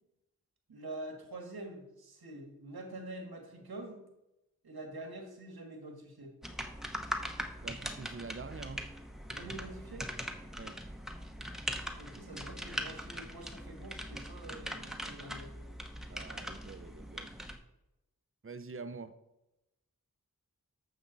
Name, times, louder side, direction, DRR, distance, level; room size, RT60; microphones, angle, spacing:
voice 1, 0.7-4.0 4.6-6.4 9.3-10.1 11.9-15.5, right 2 dB, 85° right, 1.7 m, -46 dB
sound 1, 6.4-17.6, equal, ahead, 1.0 m, -41 dB
voice 2, 7.6-8.9 10.6-10.8 16.1-17.3 18.4-19.1, right 4 dB, 35° right, 0.7 m, -45 dB
12.0 x 7.0 x 4.0 m
wide cardioid pair, 55°, 36 cm